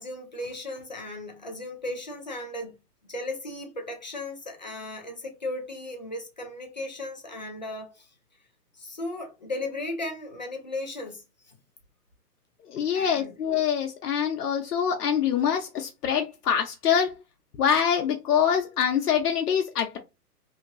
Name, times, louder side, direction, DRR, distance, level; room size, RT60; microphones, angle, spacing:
voice 1, 0.0-2.7 3.1-8.1 8.7-11.6 12.9-13.3, left 2 dB, 30° left, 0.4 m, -36 dB
voice 2, 12.7-17.2 17.6-20.0, left 8 dB, 70° left, 0.8 m, -25 dB
2.9 x 2.6 x 2.5 m
hypercardioid pair, 145°, 48 cm